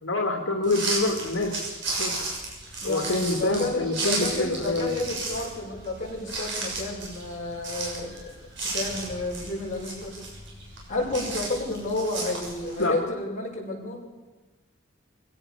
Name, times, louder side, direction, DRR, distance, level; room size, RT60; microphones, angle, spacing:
voice 1, 0.0-1.5 2.0-2.1 2.8-4.9 12.8-13.0, left 2 dB, 80° left, 2 dB, 2.4 m, -26 dB
sound 1, 0.6-12.8, right 3 dB, 65° right, 6.9 m, -34 dB
voice 2, 2.8-8.1 8.7-10.1 10.9-14.1, left 2 dB, 40° left, -2 dB, 7.4 m, -31 dB
23.0 x 16.5 x 7.3 m, 1.2 s
head